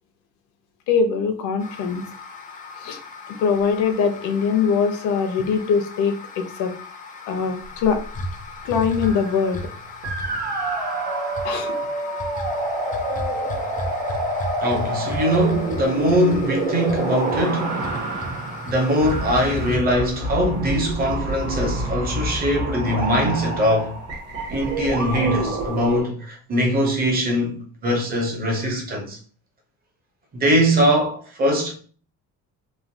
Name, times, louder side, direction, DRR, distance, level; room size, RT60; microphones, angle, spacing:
voice 1, 0.9-2.0 2.8-3.0 3.4-6.7 7.3-8.0 8.6-9.6 11.4-11.7, left 6 dB, 75° left, 0.6 m, -22 dB
sound 1, 1.6-19.8, left 2 dB, 30° left, 0.4 m, -36 dB
sound 2, 9.0-9.7 10.0-26.0, right 1 dB, 55° right, 1.1 m, -28 dB
voice 2, 14.6-17.9 18.7-24.0 24.5-29.2 30.3-31.7, equal, 30° right, 0.7 m, -21 dB
3.1 x 2.2 x 2.6 m
cardioid pair, 170°, 30 cm